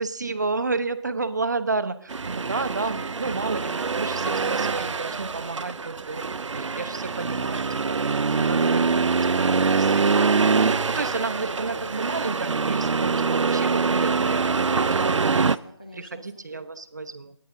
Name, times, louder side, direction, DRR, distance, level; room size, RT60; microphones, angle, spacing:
voice 1, 0.0-6.2 6.5-8.9 9.2-9.5 9.8-14.6 15.9-17.4, right 3 dB, 40° right, 11 dB, 0.6 m, -31 dB
Accelerating revving vroom, 2.1-15.6, right 5 dB, 85° right, 0.5 m, -24 dB
Guitar, 7.1-14.6, left 2 dB, 55° left, 2.9 m, -48 dB
voice 2, 14.5-16.2, right 1 dB, 15° left, 2 dB, 0.4 m, -40 dB
18.0 x 9.3 x 3.7 m, 0.66 s
figure-of-eight pair, 170°, 15 cm